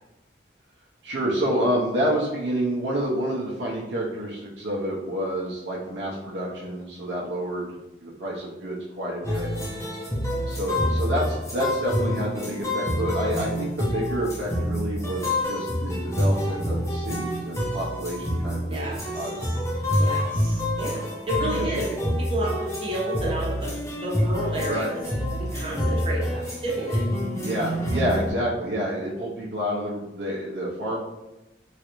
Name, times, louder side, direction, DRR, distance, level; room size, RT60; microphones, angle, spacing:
voice 1, 1.0-9.5 10.5-19.4 21.4-22.0 24.7-24.9 27.4-31.0, equal, 75° right, -5 dB, 0.6 m, -29 dB
sound 1, 9.2-28.3, left 1 dB, 15° left, 0.5 m, -27 dB
voice 2, 18.7-19.5 20.0-23.7 24.0-25.0 25.4-27.0, right 1 dB, 30° right, -6 dB, 0.9 m, -31 dB
3.1 x 2.4 x 2.9 m, 0.96 s
head